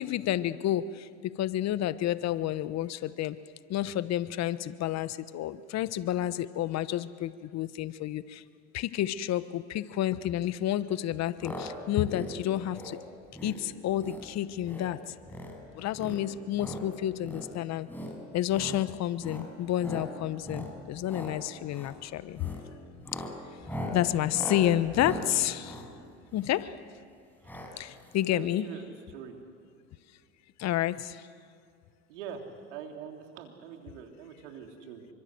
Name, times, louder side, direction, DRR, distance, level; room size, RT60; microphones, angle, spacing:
voice 1, 0.0-3.4 3.7-8.4 8.7-13.0 13.4-15.1 15.7-17.9 18.3-22.5 23.1-23.2 23.9-25.8 26.3-26.7 27.8-28.7 30.6-31.3, left 12 dB, 45° left, 15 dB, 1.0 m, -30 dB
sound 1, 11.4-11.7 12.0-12.3 12.7-13.0 13.3-13.6 14.0-14.3 14.6-14.9 15.2-15.6 15.9-16.8 17.2-17.5 17.9-18.1 18.5-18.8 19.2-19.5 19.8-20.1 20.4-20.7 21.0-21.3 21.7-22.0 22.3-22.6 23.0-26.7 27.4-27.7 28.0-28.1 28.3-28.4, equal, 5° left, 6.0 m, -39 dB
voice 2, 28.3-29.4 32.1-32.4 32.7-35.1, right 7 dB, 75° right, 4 dB, 3.6 m, -43 dB
27.5 x 24.5 x 7.8 m, 2.3 s
hypercardioid pair, 85°, 36 cm